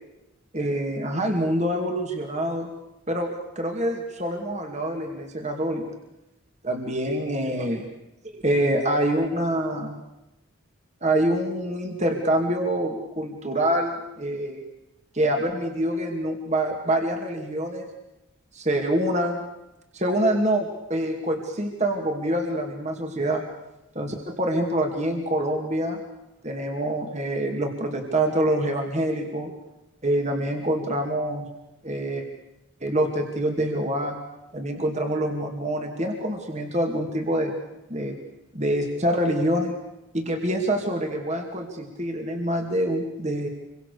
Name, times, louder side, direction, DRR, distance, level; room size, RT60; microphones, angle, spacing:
voice 1, 0.5-2.7 3.1-3.3 3.6-5.8 6.6-7.9 8.3-10.0 11.0-14.6 15.1-17.9 18.5-19.4 19.9-23.4 23.9-26.0 26.4-29.5 30.0-31.5 31.8-32.2 32.8-34.2 34.5-37.5 37.9-38.2 38.5-39.7 40.1-43.5, right 1 dB, 30° right, 3 dB, 2.6 m, -26 dB
28.0 x 24.5 x 6.8 m, 0.92 s
head